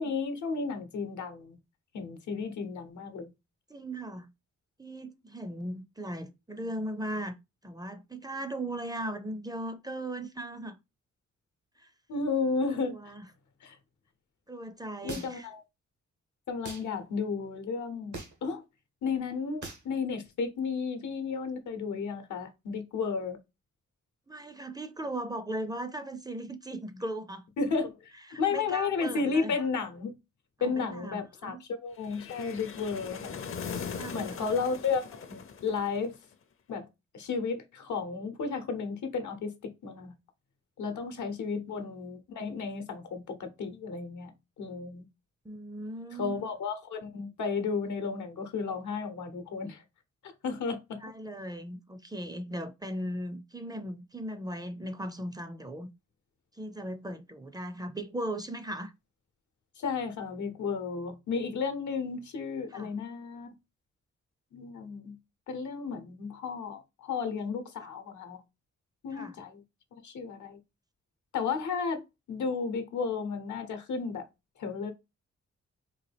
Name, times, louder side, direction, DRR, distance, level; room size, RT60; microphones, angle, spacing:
voice 1, 0.0-1.6 1.9-3.3 12.1-13.1 13.6-13.8 15.0-15.6 16.5-18.6 19.0-23.4 27.6-30.1 30.6-33.4 34.1-36.1 36.7-36.9 37.1-40.1 40.8-45.1 46.2-49.8 50.2-51.0 59.8-63.5 64.5-65.1 65.5-68.4 69.0-69.6 70.0-70.6 71.3-74.3 74.6-74.9, left 5 dB, 85° left, 0.8 m, -33 dB
voice 2, 3.7-4.3 4.8-7.4 7.6-10.8 11.8-11.9 12.9-13.3 14.5-15.5 24.3-27.5 28.3-29.6 30.6-31.6 34.0-34.5 41.2-41.4 45.4-46.5 51.0-55.9 56.5-58.9 62.7-62.9 69.1-69.4, right 1 dB, 15° right, 0.4 m, -38 dB
sound 1, 15.1-15.5 16.6-16.9 18.1-18.5 19.6-19.9, right 2 dB, 80° right, 1.2 m, -41 dB
sound 2, 32.0-36.3, left 6 dB, 50° left, 0.5 m, -40 dB
3.9 x 2.2 x 3.3 m
cardioid pair, 70°, 29 cm